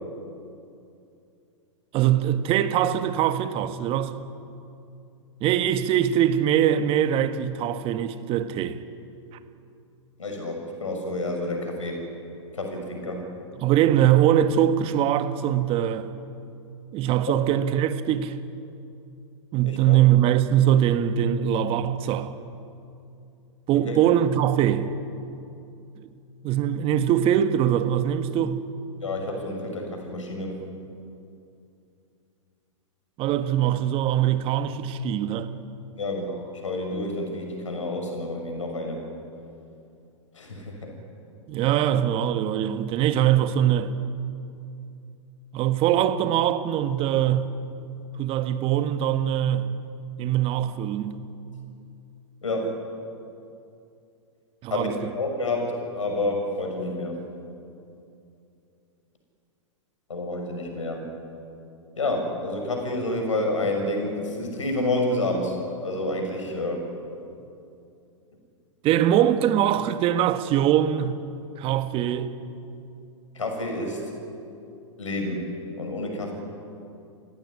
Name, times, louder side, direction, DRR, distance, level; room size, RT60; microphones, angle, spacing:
voice 1, 1.9-4.2 5.4-8.8 13.6-16.1 16.9-18.4 19.5-22.4 23.7-24.9 26.0-26.2 26.4-28.6 33.2-35.5 41.5-43.9 45.5-47.5 48.2-49.7 50.2-51.2 54.6-54.9 68.8-71.2 71.6-72.3, right 10 dB, 35° right, 1.6 m, -22 dB
voice 2, 10.2-12.0 12.5-13.3 19.6-20.0 23.7-24.0 29.0-30.6 36.0-39.0 40.3-40.9 52.4-52.8 54.7-57.2 60.1-61.0 62.0-65.5 65.8-66.8 73.3-74.0 75.0-75.5 75.8-76.3, left 2 dB, 75° left, 6.4 m, -29 dB
27.5 x 16.5 x 10.0 m
figure-of-eight pair, 105°, 16 cm